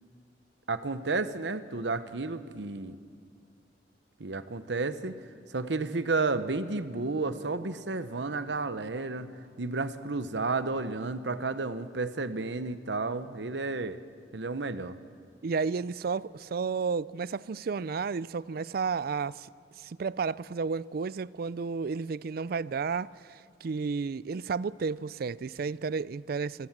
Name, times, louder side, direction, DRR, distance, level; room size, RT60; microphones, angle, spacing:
voice 1, 0.7-3.0 4.2-5.1 5.5-9.3 9.6-14.0 14.3-15.0, right 3 dB, 75° right, 1.0 m, -32 dB
voice 2, 15.4-19.5 19.8-26.7, right 5 dB, 55° right, 0.4 m, -32 dB
26.5 x 15.5 x 7.4 m
head